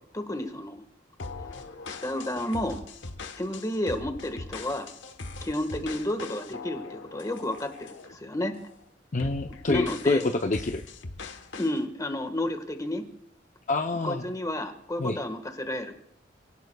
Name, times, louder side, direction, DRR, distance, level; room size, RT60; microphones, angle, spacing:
voice 1, 0.1-0.8 1.9-2.8 3.4-4.9 5.4-8.5 9.6-10.3 11.6-13.0 14.0-15.9, left 1 dB, 20° left, 7 dB, 1.5 m, -31 dB
sound 1, 1.2-8.2 8.5-8.8 9.2-11.8, left 3 dB, 80° left, 1.1 m, -41 dB
voice 2, 9.1-10.8 13.7-14.3 15.0-15.2, left 2 dB, 45° left, 5 dB, 0.7 m, -27 dB
28.0 x 17.5 x 2.3 m, 0.73 s
head